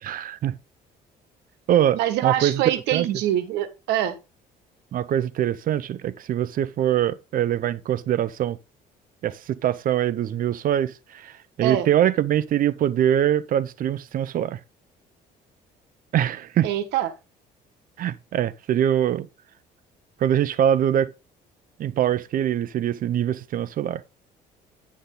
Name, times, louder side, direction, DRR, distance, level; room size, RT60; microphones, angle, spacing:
voice 1, 0.0-0.5 1.7-2.6 2.9-3.1 4.9-8.6 9.2-11.3 11.6-14.6 16.1-16.7 18.0-19.3 20.2-21.1 21.8-24.0, right 10 dB, 55° right, 0.9 m, -23 dB
voice 2, 1.9-4.2 11.6-11.9 16.6-17.1, right 12 dB, 90° right, 1.6 m, -24 dB
9.7 x 6.4 x 3.9 m
cardioid pair, 110°, 17 cm